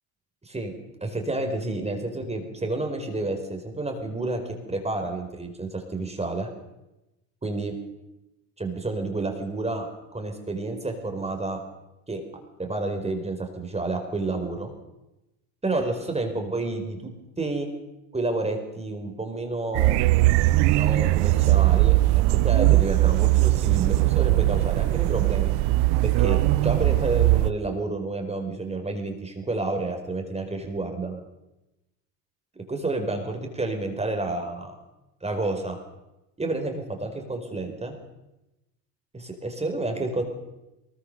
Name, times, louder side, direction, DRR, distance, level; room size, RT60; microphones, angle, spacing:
voice 1, 0.4-0.7 1.0-4.4 4.7-6.5 7.4-7.7 8.6-11.6 12.1-12.2 12.6-14.7 15.6-17.1 17.4-17.7 18.1-20.0 20.6-22.0 22.3-25.5 26.0-31.2 32.5-34.7 35.2-35.8 36.4-37.9 39.1-40.2, right 2 dB, 15° right, 4 dB, 4.7 m, -30 dB
sound 1, 19.7-27.5, right 18 dB, 65° right, 1.0 m, -20 dB
23.0 x 21.0 x 6.7 m, 0.95 s
supercardioid pair, 100°, 45 cm